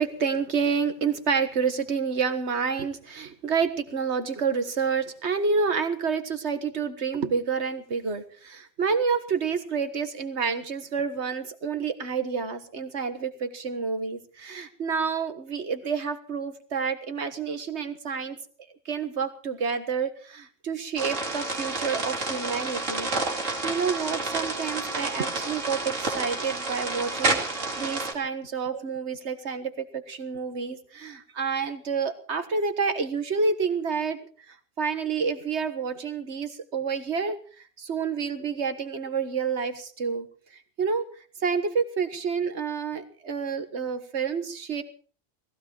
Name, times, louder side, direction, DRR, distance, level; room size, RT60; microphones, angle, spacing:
voice 1, 0.0-18.4 18.9-34.2 34.5-37.4 37.8-40.3 40.8-41.0 41.4-44.8, right 5 dB, 65° right, 10 dB, 1.8 m, -29 dB
sound 1, 21.0-28.1, right 3 dB, 90° right, 3.0 m, -29 dB
18.0 x 16.0 x 4.7 m, 0.41 s
omnidirectional pair, 1.2 m